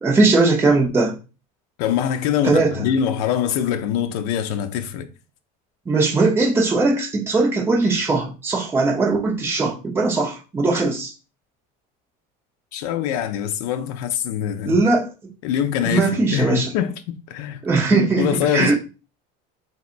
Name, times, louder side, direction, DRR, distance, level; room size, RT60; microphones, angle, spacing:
voice 1, 0.0-1.2 2.4-2.7 5.9-11.1 14.6-15.1 15.8-16.7 17.6-18.3 18.5-18.8, right 3 dB, 10° right, 0.8 m, -19 dB
voice 2, 1.8-5.1 12.7-14.8 15.4-18.8, left 9 dB, 75° left, 0.5 m, -24 dB
4.1 x 4.0 x 2.5 m
cardioid pair, 165°, 20 cm